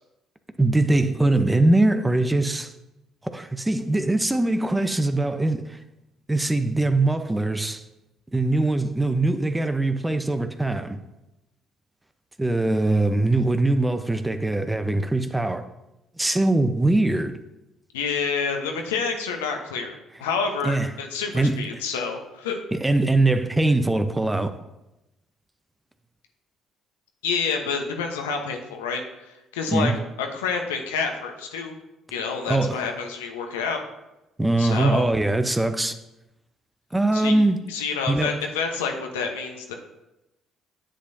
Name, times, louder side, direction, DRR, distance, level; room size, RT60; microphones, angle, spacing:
voice 1, 0.6-2.7 3.2-5.8 6.3-7.8 8.3-11.0 12.4-15.6 16.2-17.4 20.6-20.9 21.3-21.7 22.7-24.5 29.7-30.0 32.5-32.8 34.4-35.9 36.9-37.6 38.1-38.4, right 2 dB, 15° right, 0.8 m, -22 dB
voice 2, 17.9-22.6 27.2-29.9 30.2-31.8 32.1-33.8 34.6-35.0 37.1-37.3 37.7-39.7, left 5 dB, 80° left, 1.0 m, -28 dB
10.0 x 8.2 x 2.7 m
hypercardioid pair, 50°, 0 cm